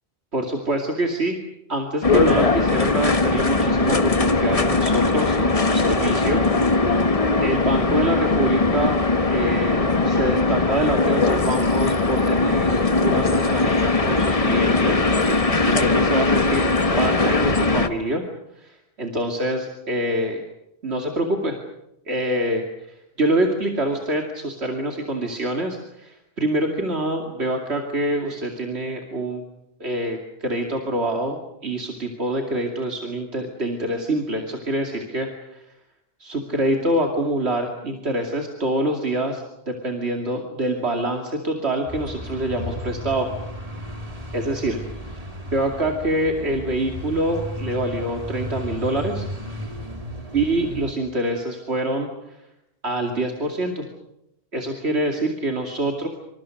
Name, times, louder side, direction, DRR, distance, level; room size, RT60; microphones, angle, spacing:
voice 1, 0.3-1.4 1.7-7.1 7.4-9.0 9.3-15.1 15.6-16.7 17.0-18.2 18.5-20.4 20.8-21.6 22.1-29.4 29.8-35.6 36.2-43.3 44.3-44.8 45.1-45.2 45.5-49.3 50.3-52.4 52.8-53.9 54.5-56.1, right 1 dB, 85° right, 3 dB, 2.9 m, -25 dB
sound 1, 2.0-17.9, left 3 dB, 35° left, 1.3 m, -20 dB
sound 2, 41.9-50.9, equal, 35° right, 3.1 m, -34 dB
27.0 x 26.0 x 6.5 m, 0.83 s
omnidirectional pair, 1.1 m